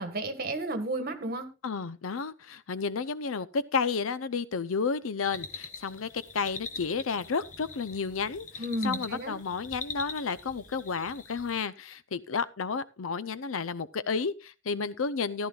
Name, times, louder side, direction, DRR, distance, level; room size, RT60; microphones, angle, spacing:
voice 1, 0.0-1.5 8.6-9.4, right 1 dB, 50° right, 1.6 m, -32 dB
voice 2, 1.6-8.5 8.8-15.5, left 5 dB, 85° left, 0.6 m, -31 dB
sound 1, 5.3-11.6, left 4 dB, 40° left, 1.2 m, -43 dB
14.5 x 11.5 x 2.4 m
head